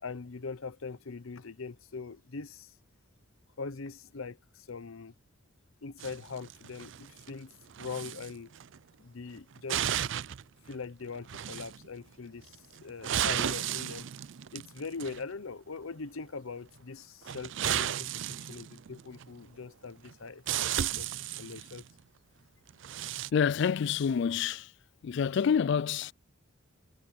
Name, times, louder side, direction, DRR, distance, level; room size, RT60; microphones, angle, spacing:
voice 1, 0.0-2.7 3.6-5.1 5.8-8.5 9.0-9.9 10.7-14.1 14.5-18.1 18.5-21.1 21.4-21.8, left 4 dB, 75° left, 0.8 m, -42 dB
sound 1, 6.0-7.3 7.7-8.3 8.6-8.8 9.4-10.4 10.7-10.8 11.3-11.9 12.5-15.3 17.2-19.3 20.1-20.2 20.5-21.8 22.7-23.3, right 10 dB, 60° right, 0.4 m, -34 dB
voice 2, 23.3-24.7 25.0-26.1, left 7 dB, 55° left, 0.3 m, -27 dB
head